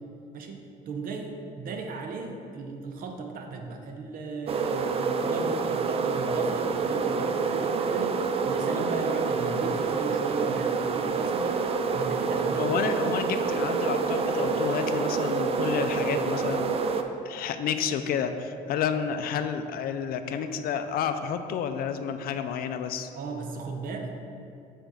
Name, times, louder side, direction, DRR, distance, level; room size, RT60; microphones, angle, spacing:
voice 1, 0.3-13.1 23.1-24.1, right 4 dB, 60° right, 4 dB, 0.8 m, -36 dB
sound 1, 4.5-17.0, right 5 dB, 35° right, 0.4 m, -27 dB
voice 2, 12.6-16.8 17.2-23.1, left 7 dB, 60° left, 9 dB, 0.4 m, -30 dB
7.0 x 4.4 x 3.9 m, 2.5 s
cardioid pair, 110°, 17 cm